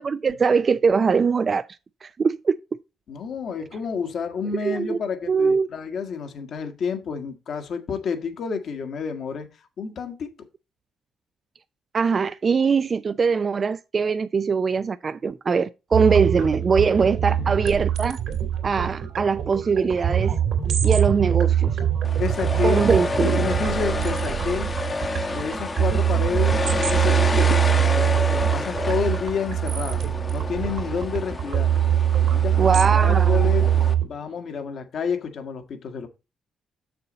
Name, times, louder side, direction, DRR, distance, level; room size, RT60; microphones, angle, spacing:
voice 1, 0.0-1.7 2.0-2.6 4.6-5.0 5.3-5.7 11.9-18.2 18.6-20.4 20.8-21.8 22.6-23.4 27.1-27.2 32.6-33.5, right 5 dB, 40° right, 0.4 m, -22 dB
voice 2, 3.1-9.5 9.8-10.3 17.3-17.5 22.2-22.9 23.2-24.7 25.3-30.0 30.3-31.7 32.3-36.1, left 6 dB, 60° left, 1.6 m, -30 dB
sound 1, 15.9-34.1, right 10 dB, 75° right, 2.6 m, -23 dB
sound 2, 22.0-33.9, left 3 dB, 30° left, 1.0 m, -29 dB
6.9 x 6.8 x 4.0 m
cardioid pair, 90°, 0 cm